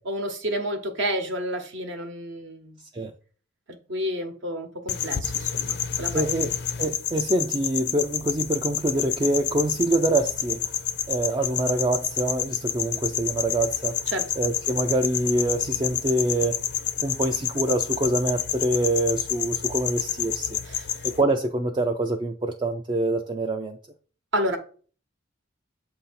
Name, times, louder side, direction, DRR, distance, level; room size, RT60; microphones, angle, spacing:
voice 1, 0.0-2.8 3.9-6.5 14.1-14.3 20.6-21.0 24.3-24.6, equal, 60° right, 0.9 m, -30 dB
sound 1, 4.9-21.2, left 10 dB, 55° left, 0.5 m, -29 dB
voice 2, 6.1-6.5 6.8-10.7 11.1-13.9 14.4-16.6 17.0-20.6 21.0-23.8, right 2 dB, 20° right, 0.3 m, -25 dB
7.6 x 2.7 x 5.6 m
head